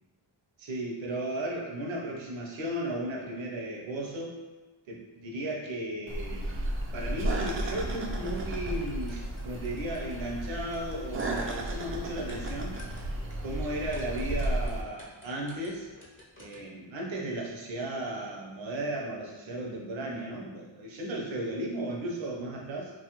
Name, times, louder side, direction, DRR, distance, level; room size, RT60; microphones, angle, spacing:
voice 1, 0.6-4.4 4.9-6.6 6.9-12.8 13.4-15.9 16.4-22.9, right 1 dB, 80° right, -2 dB, 0.8 m, -35 dB
sound 1, 6.1-14.8, right 1 dB, 30° right, 0.4 m, -34 dB
sound 2, 6.6-14.6, left 2 dB, 75° left, 0.6 m, -43 dB
sound 3, 7.7-16.8, left 1 dB, 25° left, 0.7 m, -54 dB
2.8 x 2.3 x 2.9 m, 1.2 s
cardioid pair, 85°, 46 cm